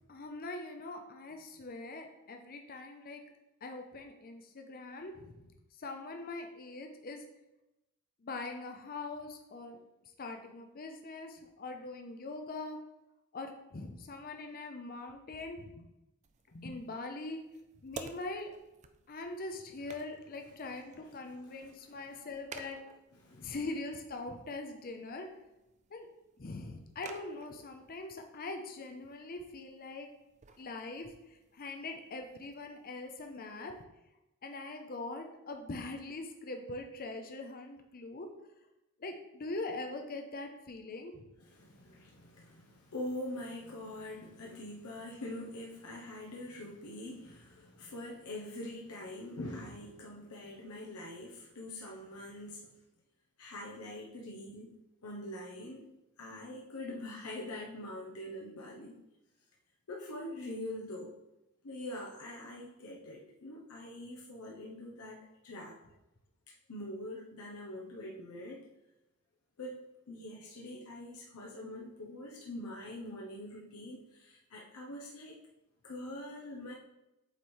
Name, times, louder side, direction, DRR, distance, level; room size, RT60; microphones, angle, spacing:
voice 1, 0.0-3.2 3.6-5.3 5.8-7.2 8.2-9.8 10.2-12.8 13.3-15.8 16.5-17.4 17.8-18.5 19.1-22.8 23.4-25.3 25.9-26.1 26.4-30.1 30.6-31.1 31.5-33.7 34.4-38.3 39.0-41.2, left 2 dB, 40° left, 4 dB, 0.6 m, -42 dB
sound 1, 16.2-33.8, right 5 dB, 35° right, 0.4 m, -55 dB
voice 2, 21.9-22.2 23.2-23.6 41.5-52.7 53.4-54.8 55.0-59.0 59.9-61.1 61.6-65.8 66.5-68.7 69.6-75.4 75.8-76.7, left 1 dB, 85° left, -2 dB, 0.8 m, -44 dB
8.0 x 3.2 x 4.3 m, 0.94 s
head